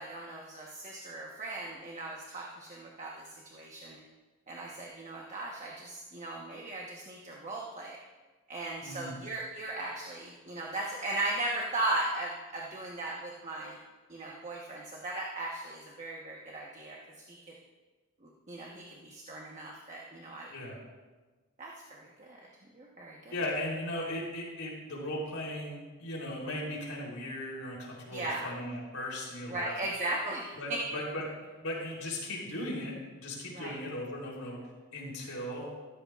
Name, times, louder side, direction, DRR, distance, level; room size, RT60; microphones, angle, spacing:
voice 1, 0.0-4.0 4.5-8.0 8.5-13.8 14.1-17.4 18.2-20.5 21.6-22.4 22.7-23.3 28.1-28.5 29.5-30.8 33.5-33.8, right 2 dB, 35° right, -3 dB, 1.2 m, -37 dB
voice 2, 8.8-9.2 20.5-20.8 23.3-29.7 30.6-31.2 31.6-34.6 34.9-35.7, left 1 dB, 85° left, -3 dB, 3.6 m, -37 dB
14.5 x 13.5 x 2.5 m, 1.3 s
head